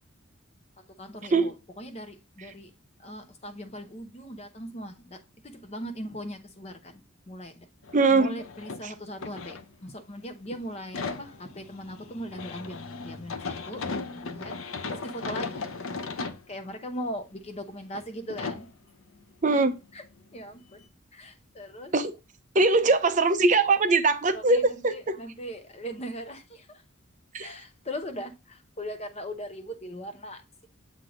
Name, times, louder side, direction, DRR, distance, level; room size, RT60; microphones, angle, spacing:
voice 1, 0.8-2.7 3.0-7.7 8.1-15.7 16.5-18.7 19.9-20.0 20.3-20.8 21.1-21.9 24.3-26.8 27.4-30.7, equal, 30° left, 0.8 m, -39 dB
sound 1, 7.8-8.1 8.4-10.1 10.4-16.4 17.1-17.2 17.9-18.0 18.3-18.7 20.4-20.5 20.8-20.9, left 4 dB, 80° left, 0.7 m, -37 dB
voice 2, 7.9-8.4 8.8-8.9 16.2-16.3 19.4-19.8 21.9-22.1 22.5-25.2 27.3-27.5, right 3 dB, 35° right, 0.6 m, -22 dB
7.8 x 2.7 x 4.9 m
head